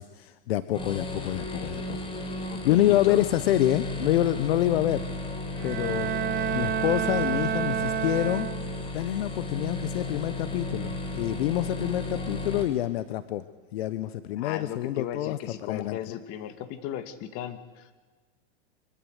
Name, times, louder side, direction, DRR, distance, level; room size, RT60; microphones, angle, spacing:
voice 1, 0.0-2.0 2.6-5.0 5.6-6.1 6.5-8.5 8.9-13.4 13.7-16.2, left 14 dB, 75° left, 13 dB, 1.2 m, -27 dB
sound 1, 0.7-12.6, left 2 dB, 15° left, 4.7 m, -34 dB
voice 2, 2.5-3.2 14.4-17.9, left 11 dB, 50° left, 9 dB, 2.6 m, -36 dB
Bowed string instrument, 5.6-9.0, right 10 dB, 30° right, 0.8 m, -30 dB
25.0 x 23.0 x 8.3 m, 1.3 s
supercardioid pair, 125°, 31 cm